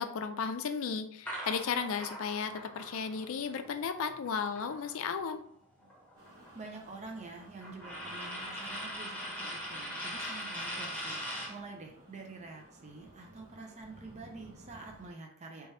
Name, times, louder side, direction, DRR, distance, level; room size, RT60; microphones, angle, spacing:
voice 1, 0.0-5.4, left 6 dB, 60° left, 9 dB, 0.4 m, -34 dB
sound 1, 1.3-5.3 5.6-11.6, equal, 5° left, 0.8 m, -41 dB
sound 2, 6.2-15.1, right 1 dB, 75° right, 1.3 m, -57 dB
voice 2, 6.5-15.7, right 3 dB, 30° right, 1 dB, 0.5 m, -47 dB
3.4 x 2.8 x 3.2 m, 0.65 s
head